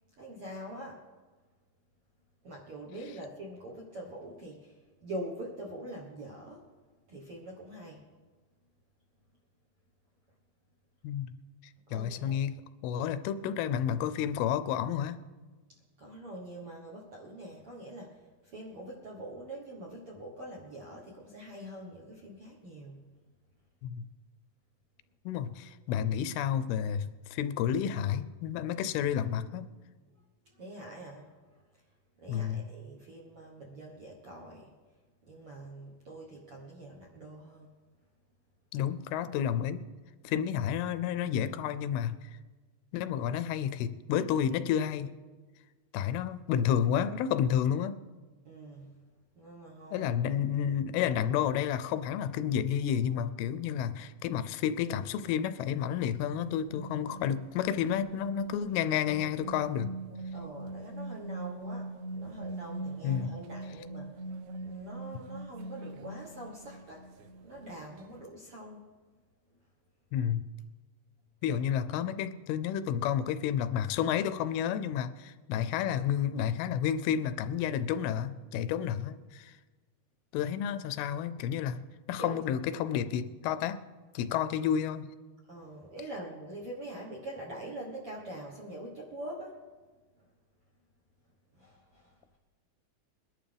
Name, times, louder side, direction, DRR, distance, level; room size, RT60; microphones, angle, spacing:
voice 1, 0.2-1.0 2.4-6.7 7.1-8.0 11.9-12.4 15.7-23.0 30.4-31.3 32.2-34.7 35.3-37.8 48.4-49.0 49.3-50.1 60.3-64.2 64.6-68.9 71.5-71.9 82.2-82.4 85.5-89.6 90.2-90.3 91.5-92.4, right 1 dB, 60° right, -3 dB, 1.5 m, -44 dB
voice 2, 11.9-12.6 12.8-15.2 23.8-24.1 25.3-29.7 32.3-32.7 38.7-39.8 40.2-42.3 42.9-45.1 45.9-48.0 49.9-59.9 63.0-63.3 70.1-70.5 71.4-79.5 80.3-81.8 82.1-83.8 84.1-85.1, left 9 dB, 85° left, 13 dB, 2.5 m, -30 dB
sound 1, 56.3-68.2, right 2 dB, 85° right, 1.7 m, -42 dB
22.0 x 11.5 x 3.4 m, 1.3 s
omnidirectional pair, 4.4 m